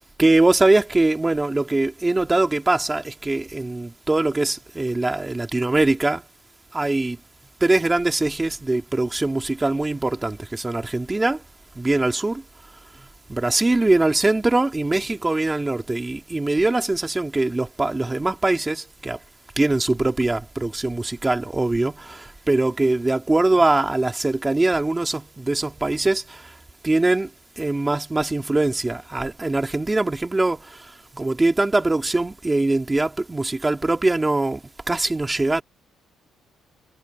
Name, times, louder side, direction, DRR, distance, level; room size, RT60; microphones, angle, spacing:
voice 1, 0.2-6.2 6.7-7.2 7.6-11.4 11.8-12.4 13.3-19.2 19.6-26.4 26.8-27.3 27.6-30.8 31.1-34.6 34.9-35.6, right 2 dB, 10° right, 2.3 m, -22 dB
cardioid pair, 165°, 0 cm